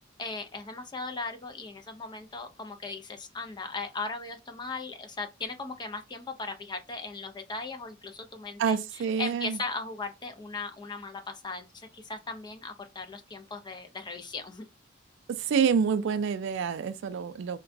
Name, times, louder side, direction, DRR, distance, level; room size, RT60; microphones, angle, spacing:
voice 1, 0.2-14.7, left 3 dB, 25° left, 0.5 m, -38 dB
voice 2, 8.6-9.6 15.3-17.6, right 6 dB, 65° right, 0.3 m, -27 dB
3.8 x 2.2 x 2.5 m
head